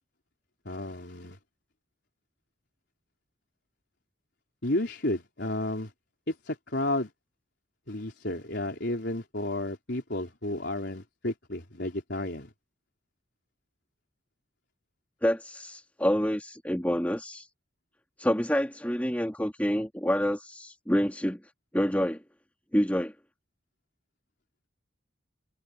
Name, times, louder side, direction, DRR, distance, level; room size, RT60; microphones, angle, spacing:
voice 1, 0.7-1.4 4.6-5.9 6.3-7.1 7.9-12.5, left 1 dB, 70° left, 3.8 m, -32 dB
voice 2, 15.2-17.5 18.2-21.4 21.7-22.2 22.7-23.1, equal, 10° left, 2.4 m, -27 dB
head